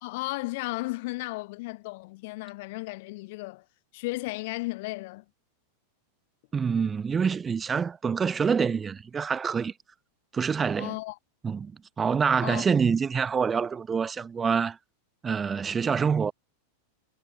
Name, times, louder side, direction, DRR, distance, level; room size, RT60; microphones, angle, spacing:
voice 1, 0.0-3.6 3.9-5.2 10.8-11.2 12.4-12.6, left 22 dB, 50° left, 0.8 m, -34 dB
voice 2, 6.5-9.7 10.3-10.9 11.4-11.7 12.0-14.8 15.2-16.3, right 6 dB, 20° right, 0.9 m, -26 dB
figure-of-eight pair, 90°, 0 cm